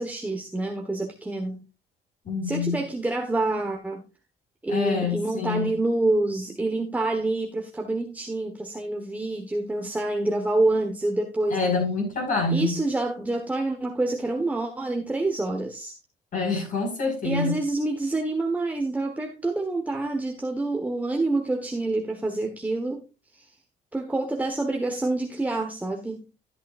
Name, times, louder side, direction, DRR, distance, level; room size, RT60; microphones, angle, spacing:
voice 1, 0.0-1.6 2.4-4.0 4.6-11.6 12.5-16.0 17.2-23.0 23.3-23.6 23.9-26.3, right 2 dB, 10° right, 1.3 m, -27 dB
voice 2, 2.2-2.8 4.7-5.7 11.5-12.8 16.3-17.6, left 4 dB, 50° left, 5.1 m, -26 dB
13.5 x 8.9 x 2.5 m
cardioid pair, 110°, 17 cm